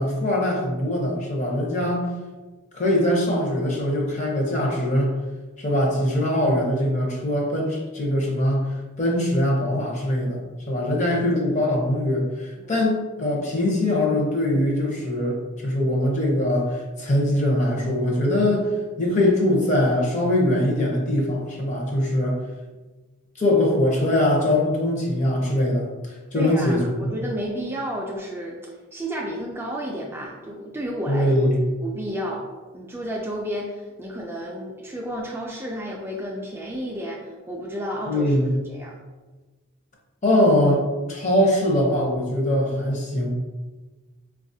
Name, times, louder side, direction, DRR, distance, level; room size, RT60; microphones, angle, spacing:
voice 1, 0.0-2.1 2.7-5.2 5.6-10.4 10.7-18.7 19.0-22.4 23.4-27.2 31.1-31.6 38.1-38.5 40.2-43.3, left 1 dB, 35° left, -1 dB, 0.7 m, -22 dB
voice 2, 12.6-12.9 26.3-31.3 31.8-32.5 32.7-38.4 38.7-39.0, equal, 10° right, -3 dB, 0.3 m, -32 dB
4.2 x 2.3 x 2.6 m, 1.3 s
head